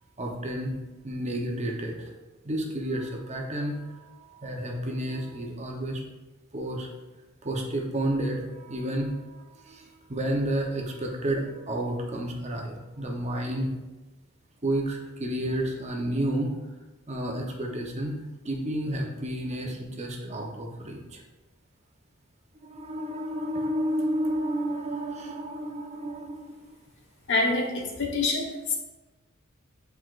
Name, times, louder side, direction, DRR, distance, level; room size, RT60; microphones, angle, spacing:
voice 1, 0.2-0.7 1.0-2.0 2.4-6.0 6.5-6.9 7.4-13.7 14.6-16.5 17.1-18.2 18.4-21.2 22.6-26.7, right 1 dB, 35° right, 1 dB, 0.8 m, -31 dB
voice 2, 27.3-28.8, left 3 dB, 60° left, 1 dB, 1.1 m, -26 dB
8.2 x 4.6 x 2.5 m, 1.1 s
head